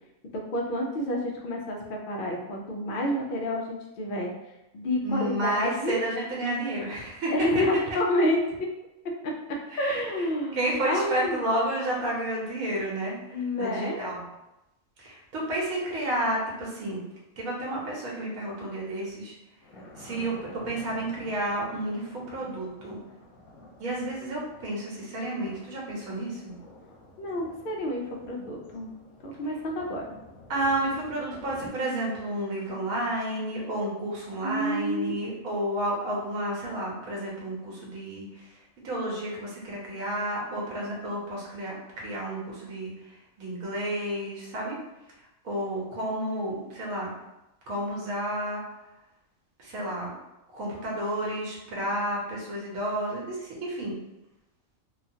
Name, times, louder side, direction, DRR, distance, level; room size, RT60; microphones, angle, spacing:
voice 1, 0.3-4.3 4.7-6.0 7.3-8.4 9.2-9.3 9.8-11.4 13.3-14.0 27.2-28.9 29.2-30.0 34.4-35.1, left 1 dB, 70° left, 0 dB, 0.5 m, -29 dB
voice 2, 5.0-7.3 9.7-14.3 15.0-17.0 17.4-19.3 20.0-23.0 23.8-26.5 30.5-44.8 45.2-47.2 47.7-48.6 49.6-50.1 50.5-54.0, right 1 dB, 85° right, -4 dB, 1.2 m, -31 dB
Thunder, 19.6-31.7, left 1 dB, 90° left, 1.1 m, -50 dB
3.0 x 2.3 x 2.6 m, 0.94 s
omnidirectional pair, 1.4 m